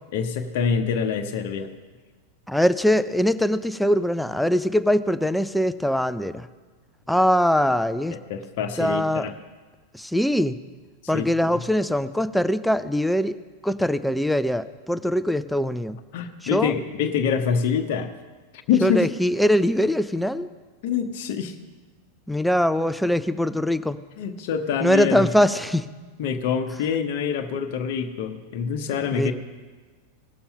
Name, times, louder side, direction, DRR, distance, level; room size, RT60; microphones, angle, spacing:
voice 1, 0.1-1.7 8.3-9.3 11.1-11.5 16.1-18.1 18.7-19.1 20.8-21.6 24.2-25.3 26.2-29.3, left 7 dB, 50° left, 5 dB, 0.9 m, -25 dB
voice 2, 2.5-6.5 7.1-8.2 8.8-9.3 9.9-10.6 11.1-16.0 16.5-16.7 18.8-20.5 22.3-24.0 24.8-25.9 29.1-29.3, equal, ahead, 12 dB, 0.5 m, -22 dB
17.5 x 7.1 x 5.4 m, 1.4 s
figure-of-eight pair, 90°, 0 cm